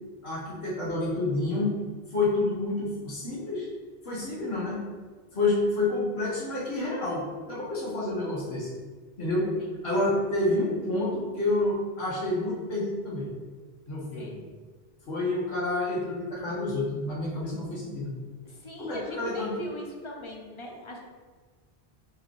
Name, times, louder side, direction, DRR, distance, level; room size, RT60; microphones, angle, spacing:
voice 1, 0.2-1.7 2.1-3.7 4.0-4.8 5.3-8.7 9.2-9.5 9.8-13.3 13.9-14.4 15.1-18.1 18.8-19.6, left 2 dB, 80° left, -6 dB, 1.5 m, -29 dB
voice 2, 18.4-21.0, equal, 35° left, 0 dB, 0.6 m, -40 dB
4.6 x 3.2 x 3.1 m, 1.4 s
omnidirectional pair, 1.1 m